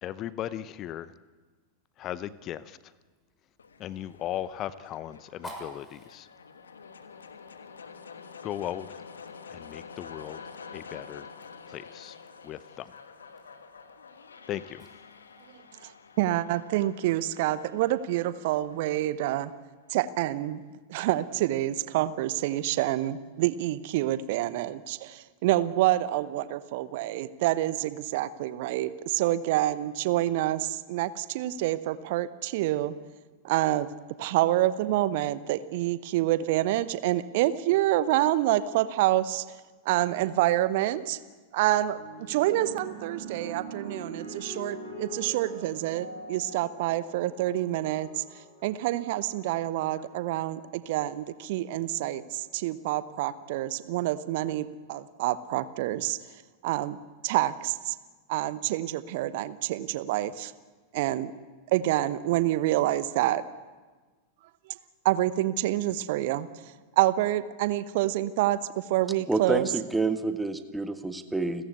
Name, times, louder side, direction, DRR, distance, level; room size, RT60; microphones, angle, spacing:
voice 1, 0.0-1.1 2.0-2.9 3.8-6.3 8.4-9.0 9.5-10.4 10.7-11.3 11.7-12.2 12.4-12.9 14.5-14.9, left 12 dB, 35° left, 17 dB, 0.7 m, -37 dB
Fire, 2.3-15.6, equal, 15° left, 6.6 m, -54 dB
sound 1, 3.6-19.6, left 5 dB, 70° left, 1.4 m, -48 dB
voice 2, 16.2-19.5 19.9-20.6 20.9-32.9 33.4-33.9 34.2-39.5 39.8-41.2 41.5-42.0 42.3-48.2 48.6-56.2 56.6-57.0 57.2-57.9 58.3-60.5 60.9-61.3 61.7-63.4 65.0-66.5 67.0-69.7, right 14 dB, 50° right, 14 dB, 0.9 m, -27 dB
sound 2, 41.9-50.5 51.4-51.8, right 2 dB, 90° right, 7.6 m, -44 dB
voice 3, 69.3-71.6, right 3 dB, 5° right, 8 dB, 1.6 m, -28 dB
30.0 x 14.5 x 8.1 m, 1.3 s
figure-of-eight pair, 90°, 0 cm